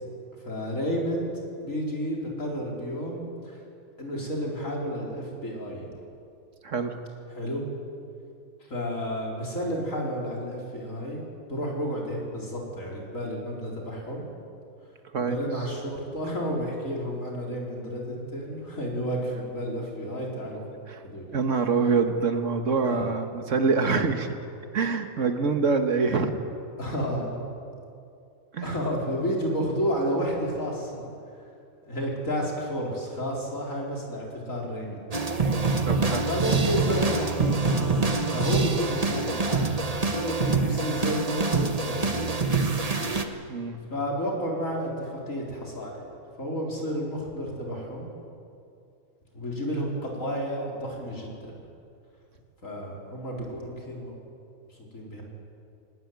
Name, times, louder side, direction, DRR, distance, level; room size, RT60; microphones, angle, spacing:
voice 1, 0.4-1.3 1.6-3.6 4.0-5.8 7.3-7.7 8.7-11.2 11.5-14.2 15.2-20.6 21.0-21.4 22.8-23.1 26.8-27.4 28.6-31.1 31.8-35.1 36.2-42.6 42.8-43.0 43.9-48.1 49.3-51.5 52.6-54.2 54.9-55.2, equal, 65° left, -2 dB, 4.9 m, -31 dB
voice 2, 6.6-7.0 15.1-15.4 20.9-21.0 21.3-24.4 24.7-26.4 28.5-28.7 35.8-36.3 43.5-43.9, right 4 dB, 60° right, 6 dB, 1.8 m, -25 dB
sound 1, 35.1-43.2, right 4 dB, 25° right, 1.3 m, -25 dB
20.0 x 19.5 x 9.5 m, 2.5 s
omnidirectional pair, 1.5 m